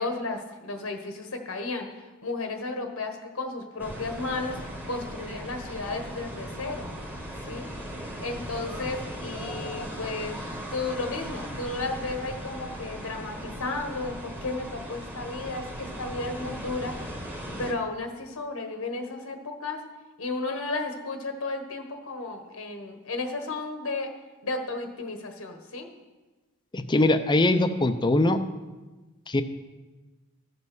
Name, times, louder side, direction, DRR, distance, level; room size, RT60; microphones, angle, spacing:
voice 1, 0.0-4.6 4.9-6.9 7.4-7.7 8.2-10.4 10.7-16.9 17.6-19.8 20.2-24.1 24.4-25.9, left 3 dB, 80° left, 5 dB, 1.3 m, -33 dB
sound 1, 3.8-17.7, equal, 10° right, 1.2 m, -38 dB
voice 2, 26.7-28.4 29.3-29.4, left 2 dB, 20° left, 9 dB, 0.6 m, -22 dB
14.0 x 5.4 x 6.2 m, 1.2 s
head